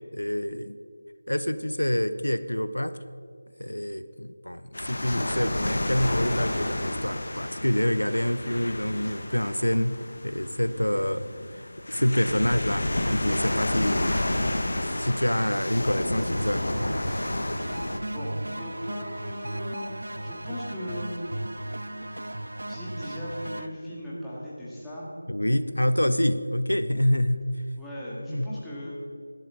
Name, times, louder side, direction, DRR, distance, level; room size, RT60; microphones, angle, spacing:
voice 1, 0.1-0.8 1.3-3.0 3.6-14.2 14.5-16.7 25.3-27.5 28.3-28.6, left 1 dB, 80° left, 12 dB, 0.6 m, -27 dB
sound 1, 4.7-18.0, left 1 dB, 60° left, 1.1 m, -30 dB
sound 2, 16.2-23.7, right 1 dB, 70° right, 0.7 m, -36 dB
voice 2, 18.1-21.2 22.3-22.4 22.7-25.1 27.8-29.0, equal, 5° left, -9 dB, 2.0 m, -38 dB
17.5 x 11.5 x 3.9 m, 2.2 s
figure-of-eight pair, 165°, 0 cm